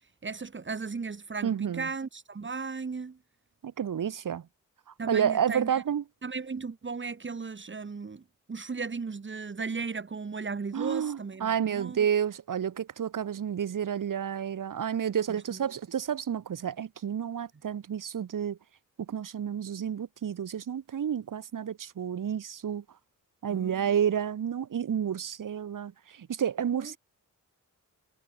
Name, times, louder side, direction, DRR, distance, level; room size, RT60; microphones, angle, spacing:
voice 1, 0.2-3.2 5.0-5.8 6.2-12.1 15.3-15.6 23.5-23.9 26.7-26.9, right 4 dB, 35° right, 4.2 m, -36 dB
voice 2, 1.4-1.9 3.6-4.4 5.1-6.0 10.7-18.6 19.1-22.8 23.4-25.9 26.2-27.0, right 8 dB, 75° right, 4.0 m, -30 dB
wide cardioid pair, 135°, 32 cm